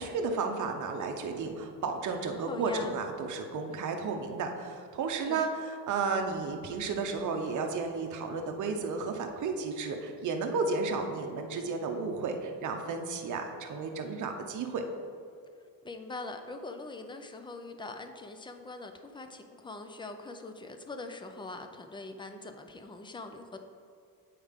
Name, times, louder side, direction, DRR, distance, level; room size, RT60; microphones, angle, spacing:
voice 1, 0.0-14.8, right 4 dB, 55° right, 4 dB, 0.9 m, -33 dB
voice 2, 2.4-3.0 5.3-5.5 15.8-23.6, left 2 dB, 15° left, 6 dB, 0.5 m, -42 dB
8.5 x 4.7 x 3.6 m, 2.3 s
cardioid pair, 120°, 36 cm